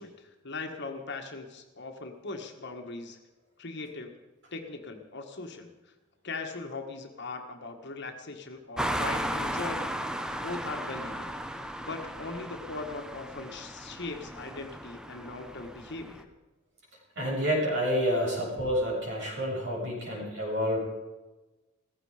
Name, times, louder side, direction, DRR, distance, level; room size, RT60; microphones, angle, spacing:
voice 1, 0.0-3.2 3.6-4.1 4.5-5.7 6.2-9.9 10.4-11.4 11.8-16.3, left 3 dB, 55° left, 5 dB, 1.6 m, -39 dB
sound 1, 8.8-16.2, equal, 5° right, 0.8 m, -35 dB
voice 2, 17.2-20.8, equal, 65° right, -2 dB, 7.0 m, -28 dB
16.0 x 15.5 x 5.0 m, 1.1 s
head